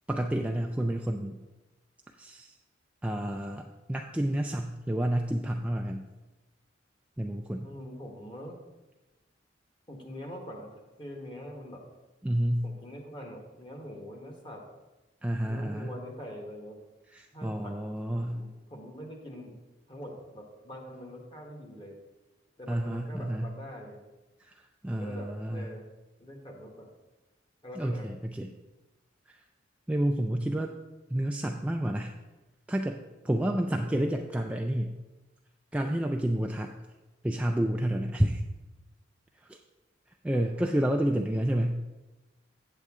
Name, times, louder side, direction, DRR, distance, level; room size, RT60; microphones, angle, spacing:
voice 1, 0.1-1.4 2.2-2.6 3.0-6.0 7.2-7.7 12.2-12.7 15.2-15.9 17.1-18.4 22.7-23.5 24.4-25.7 27.8-28.5 29.3-29.4 29.9-30.8 31.1-32.1 32.7-34.9 35.7-36.8 37.2-38.4 39.4-39.6 40.2-41.8, right 1 dB, 5° right, 2 dB, 0.3 m, -30 dB
voice 2, 7.6-8.6 9.9-11.8 12.6-14.6 15.4-16.8 17.3-19.6 19.9-22.0 22.6-24.0 24.9-25.9 26.2-26.9 27.6-28.1 33.7-34.1 40.3-40.7, equal, 25° left, 1 dB, 1.3 m, -44 dB
8.4 x 7.9 x 3.6 m, 1.1 s
head